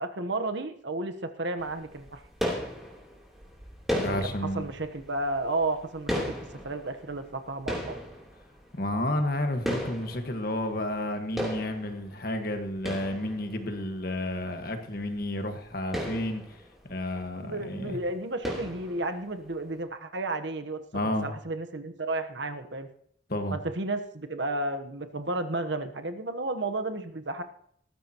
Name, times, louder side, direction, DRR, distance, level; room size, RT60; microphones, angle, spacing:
voice 1, 0.0-2.2 4.0-6.3 6.6-8.0 17.4-20.8 21.2-22.9 23.5-27.4, right 2 dB, 65° right, 7 dB, 1.1 m, -32 dB
sound 1, 1.6-11.1 11.4-13.9 14.3-14.4 14.7-14.8 15.0-15.2 15.7-17.5 17.7-18.0 18.4-19.4, equal, ahead, 3.3 m, -36 dB
voice 2, 3.9-4.6 8.7-18.0 20.9-21.3 23.3-23.6, left 1 dB, 50° left, 5 dB, 1.6 m, -31 dB
18.5 x 14.0 x 3.0 m, 0.66 s
head